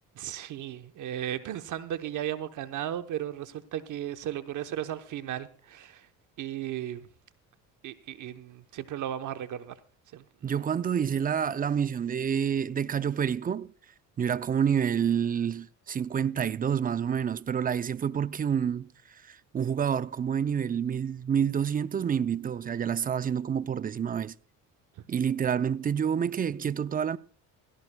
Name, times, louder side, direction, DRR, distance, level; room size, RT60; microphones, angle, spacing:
voice 1, 0.2-6.1 6.4-7.1 7.8-9.7 10.1-10.5, right 11 dB, 60° right, 0.9 m, -35 dB
voice 2, 10.4-13.7 14.2-24.4 25.1-27.2, right 8 dB, 25° right, 0.5 m, -28 dB
17.0 x 15.5 x 2.2 m
cardioid pair, 95°, 34 cm